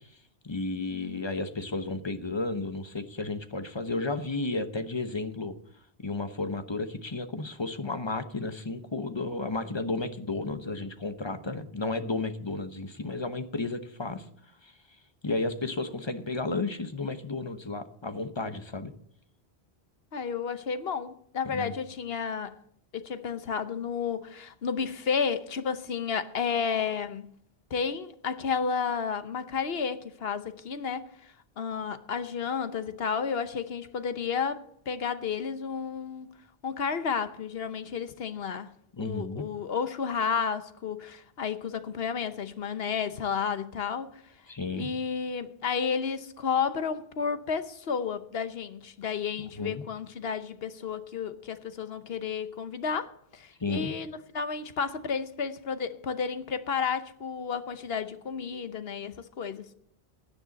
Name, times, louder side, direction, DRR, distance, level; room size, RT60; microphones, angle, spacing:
voice 1, 0.4-5.5 6.0-14.2 14.6-14.7 15.2-18.9 21.4-21.7 39.0-39.4 44.5-44.9 49.5-49.8 53.6-53.9, left 3 dB, 25° left, 1.0 m, -33 dB
voice 2, 20.1-22.6 22.9-27.3 27.7-31.1 31.6-36.3 36.6-38.7 39.0-44.2 44.7-59.7, left 6 dB, 70° left, 1.1 m, -32 dB
16.5 x 10.0 x 4.1 m
omnidirectional pair, 1.1 m